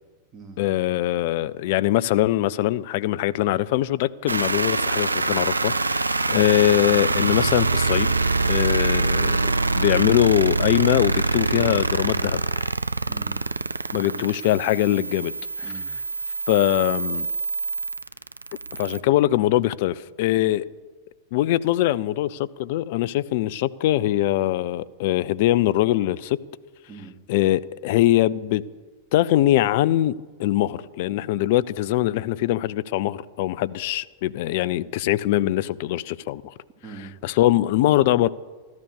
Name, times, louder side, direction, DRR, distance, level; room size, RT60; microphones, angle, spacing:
voice 1, 0.6-8.1 8.5-12.4 13.9-15.3 16.5-17.3 18.7-20.7 21.3-26.4 27.3-28.7 29.1-30.1 30.4-36.5 37.2-38.3, left 14 dB, 50° left, 0.5 m, -22 dB
sound 1, 4.3-19.0, right 3 dB, 80° right, 0.5 m, -25 dB
voice 2, 13.1-13.4 13.9-14.3 15.6-15.9 26.9-27.2 36.8-37.1, right 4 dB, 25° right, 2.6 m, -42 dB
14.0 x 13.0 x 6.7 m
figure-of-eight pair, 90°, 0 cm